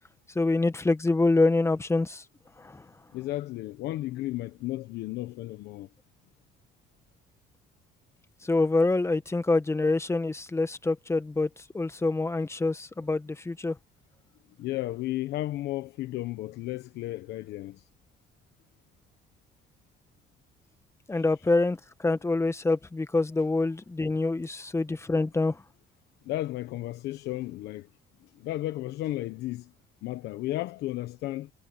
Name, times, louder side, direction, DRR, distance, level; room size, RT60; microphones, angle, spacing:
voice 1, 0.3-2.2 2.6-2.8 8.4-11.5 11.7-13.7 21.1-25.6, left 2 dB, 15° left, 1.5 m, -26 dB
voice 2, 3.1-5.9 14.6-17.8 21.1-21.2 26.2-27.9 28.2-29.7 30.0-31.5, left 16 dB, 80° left, 1.1 m, -34 dB
cardioid pair, 110°, 17 cm